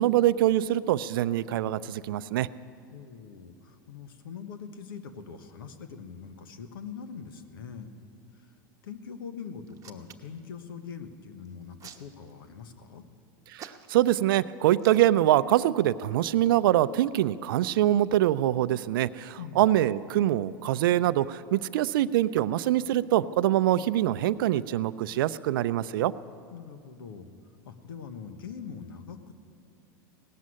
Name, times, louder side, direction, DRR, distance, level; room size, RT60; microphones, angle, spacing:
voice 1, 0.0-2.5 13.5-26.1, right 13 dB, 75° right, 16 dB, 0.5 m, -24 dB
voice 2, 2.9-7.9 8.3-8.5 8.8-13.0 19.4-19.7 26.5-27.3 27.6-29.3, left 6 dB, 85° left, 9 dB, 1.2 m, -43 dB
Hands, 9.7-10.4 11.4-12.6 13.6-14.1 14.7-15.0, right 9 dB, 30° right, 1.0 m, -48 dB
17.5 x 7.6 x 9.7 m, 2.5 s
hypercardioid pair, 115°, 12 cm